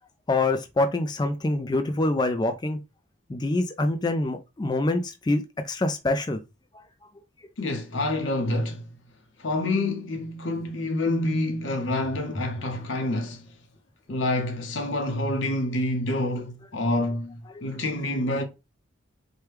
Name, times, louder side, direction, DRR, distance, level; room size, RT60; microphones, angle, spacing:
voice 1, 0.3-2.8 3.3-6.4 17.6-17.8, left 2 dB, 20° left, 0.3 m, -25 dB
voice 2, 7.6-8.9 9.4-13.5 14.1-18.4, left 1 dB, 65° left, 0.7 m, -27 dB
4.5 x 2.2 x 3.2 m
head